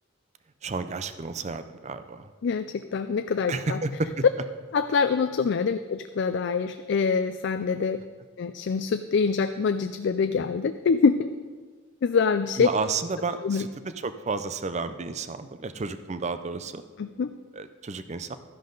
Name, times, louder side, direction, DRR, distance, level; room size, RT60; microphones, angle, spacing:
voice 1, 0.6-2.3 3.5-4.2 12.6-16.8 17.5-18.4, right 4 dB, 35° right, 11 dB, 0.5 m, -31 dB
voice 2, 2.4-3.8 4.7-8.0 8.4-11.3 12.0-12.7 13.4-13.6 17.0-17.4, left 5 dB, 60° left, 9 dB, 0.4 m, -25 dB
12.5 x 10.5 x 3.9 m, 1.4 s
head